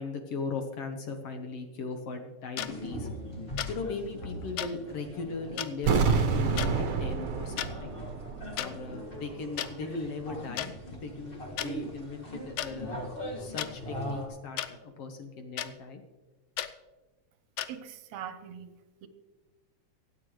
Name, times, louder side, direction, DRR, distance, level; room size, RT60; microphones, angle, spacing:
voice 1, 0.0-3.1 3.7-8.0 8.6-13.0 13.4-16.0, left 4 dB, 65° left, 5 dB, 1.8 m, -38 dB
sound 1, 2.6-2.7 3.6-3.7 4.6-4.7 5.6-5.7 6.6-6.7 7.4-7.7 8.6-8.7 9.6-9.7 10.6-10.7 11.6-11.7 12.6-12.7 13.6-13.7 14.6-14.7 15.6-15.7 16.6-16.7 17.6-17.7, left 12 dB, 90° left, 1.3 m, -33 dB
sound 2, 2.6-14.3, equal, 25° left, 1.4 m, -41 dB
sound 3, 5.8-8.7 9.0-9.1, right 5 dB, 55° right, 1.6 m, -28 dB
voice 2, 17.7-19.1, right 9 dB, 75° right, 10 dB, 2.0 m, -42 dB
24.5 x 8.7 x 3.1 m, 1.2 s
omnidirectional pair, 3.4 m